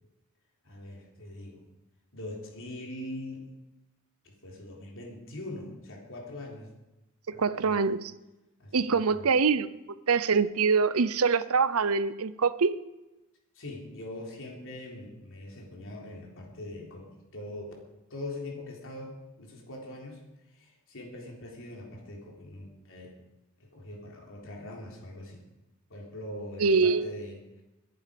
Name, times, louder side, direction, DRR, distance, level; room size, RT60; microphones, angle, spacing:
voice 1, 0.6-1.6 2.1-3.5 4.2-6.7 7.3-7.8 8.6-9.3 13.6-17.7 18.1-20.2 20.5-23.2 23.6-25.4 25.9-27.6, left 1 dB, 65° left, 0 dB, 3.7 m, -42 dB
voice 2, 7.3-8.1 8.7-9.7 10.1-12.8 26.6-27.1, right 5 dB, 70° right, 15 dB, 0.7 m, -24 dB
22.0 x 10.5 x 5.2 m, 1.0 s
head